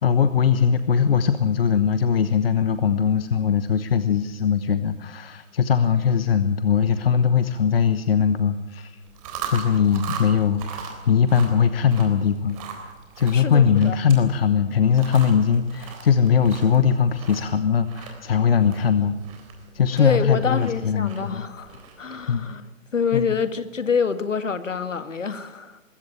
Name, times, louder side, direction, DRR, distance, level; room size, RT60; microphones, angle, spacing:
voice 1, 0.0-8.9 9.5-12.6 13.2-19.2 19.7-21.4 22.3-22.4 23.1-23.3, left 7 dB, 45° left, 12 dB, 1.1 m, -20 dB
Chewing mastication, 9.0-22.2, right 6 dB, 25° right, 3.7 m, -39 dB
voice 2, 13.3-14.0 20.0-22.7 22.9-25.8, left 6 dB, 65° left, 11 dB, 1.9 m, -26 dB
21.0 x 16.0 x 8.9 m, 1.1 s
figure-of-eight pair, 140°, 40 cm